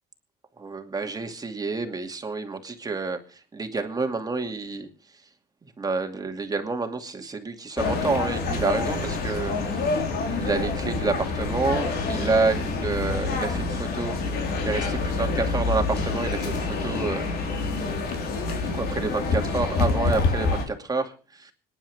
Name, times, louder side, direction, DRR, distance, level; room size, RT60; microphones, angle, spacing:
voice 1, 0.6-3.2 3.5-4.9 5.8-9.5 10.1-14.2 14.6-17.3 18.6-21.5, right 4 dB, 20° right, 5 dB, 2.5 m, -28 dB
sound 1, 7.8-20.6, left 3 dB, 70° left, 4.3 m, -27 dB
26.0 x 10.5 x 3.5 m, 0.36 s
cardioid pair, 110°, 17 cm